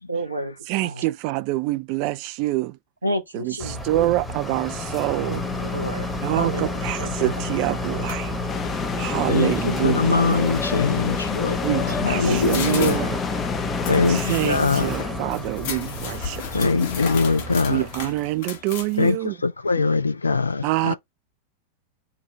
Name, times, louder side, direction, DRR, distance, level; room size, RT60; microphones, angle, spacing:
voice 1, 0.1-1.0 3.0-4.0 5.2-6.1 6.3-7.6, right 1 dB, 80° right, 0.9 m, -31 dB
voice 2, 0.7-2.7 3.4-5.4 6.2-8.3 9.0-10.5 11.6-13.2 14.1-16.7 17.7-19.3 20.6-20.9, right 17 dB, 45° right, 0.3 m, -26 dB
sound 1, 3.6-18.3, left 2 dB, 10° left, 1.0 m, -30 dB
sound 2, 8.1-8.4 10.0-10.1 10.4-10.9 11.6-19.1, left 7 dB, 50° left, 1.1 m, -34 dB
sound 3, 8.5-14.2, left 7 dB, 25° left, 0.5 m, -30 dB
voice 3, 8.9-13.0 13.7-14.9 16.5-17.9 19.0-20.9, left 4 dB, 75° left, 0.5 m, -23 dB
3.9 x 2.4 x 4.1 m
figure-of-eight pair, 90°, 0 cm